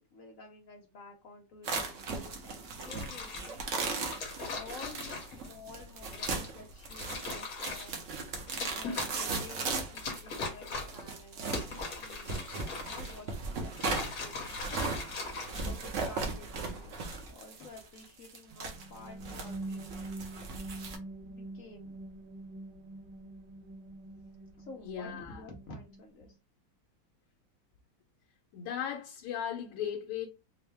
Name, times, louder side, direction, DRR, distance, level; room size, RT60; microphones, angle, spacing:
voice 1, 0.0-8.0 8.7-15.0 15.6-20.1 21.2-22.0 24.6-26.4, left 2 dB, 70° left, 0.8 m, -51 dB
sound 1, 1.6-21.0, right 4 dB, 65° right, 0.7 m, -38 dB
sound 2, 2.7-3.5 4.1-5.5 6.1-6.5 6.8-8.0 8.5-9.6 10.0-11.0 11.4-13.3 13.7-16.1 16.9-17.2, left 4 dB, 55° left, 1.5 m, -40 dB
sound 3, 18.5-26.3, right 2 dB, 90° right, 2.0 m, -45 dB
voice 2, 24.8-25.4 28.5-30.3, left 9 dB, 85° left, 1.4 m, -37 dB
4.3 x 2.1 x 3.3 m
omnidirectional pair, 2.2 m